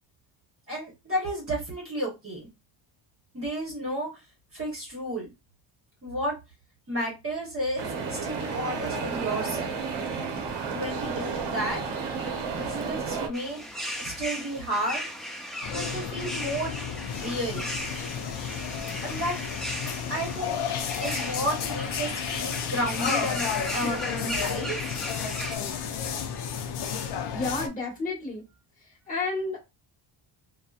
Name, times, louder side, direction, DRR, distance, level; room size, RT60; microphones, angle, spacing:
voice 1, 0.7-2.5 3.3-4.2 4.5-5.3 6.0-6.4 6.9-9.7 10.7-11.8 12.5-13.6 14.0-15.0 15.7-16.9 17.2-17.7 19.0-19.4 20.1-20.6 21.0-23.5 23.7-24.8, right 1 dB, 30° right, -3 dB, 1.0 m, -32 dB
sound 1, 7.8-13.3, right 5 dB, 65° right, 0.8 m, -32 dB
sound 2, 13.3-25.6, equal, ahead, 0.4 m, -36 dB
sound 3, 15.6-27.7, left 7 dB, 60° left, 0.5 m, -32 dB
voice 2, 27.3-28.4 29.1-29.6, left 3 dB, 15° left, -4 dB, 1.3 m, -30 dB
2.8 x 2.1 x 2.3 m, 0.24 s
cardioid pair, 150°, 46 cm